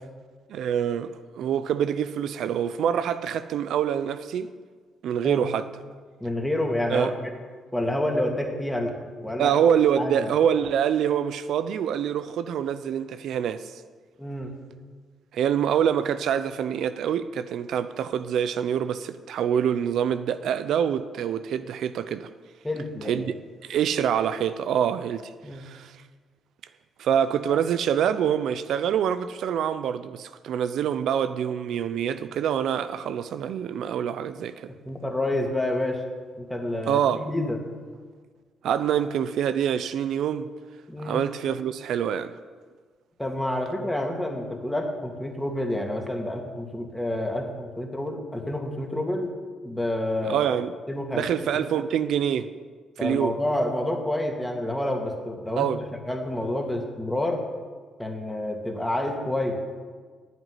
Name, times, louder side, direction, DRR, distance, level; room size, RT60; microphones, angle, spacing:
voice 1, 0.5-4.5 5.0-5.7 6.9-7.2 9.4-13.8 15.3-22.3 23.0-23.2 23.6-26.0 27.0-34.7 36.9-37.3 38.6-40.5 41.0-42.3 50.2-50.7 51.1-52.5 53.0-53.4 55.6-55.8, right 9 dB, 75° right, 0.5 m, -25 dB
voice 2, 6.2-7.3 7.7-9.0 9.2-9.5 10.0-10.3 14.2-14.5 22.6-23.2 25.4-25.7 34.9-36.0 36.4-37.6 40.9-41.2 43.2-49.3 49.6-50.5 50.9-51.2 51.5-51.6 53.0-55.7 56.1-57.4 58.0-59.6, left 1 dB, 5° left, 2.2 m, -28 dB
9.5 x 8.0 x 9.6 m
cardioid pair, 90°, 0 cm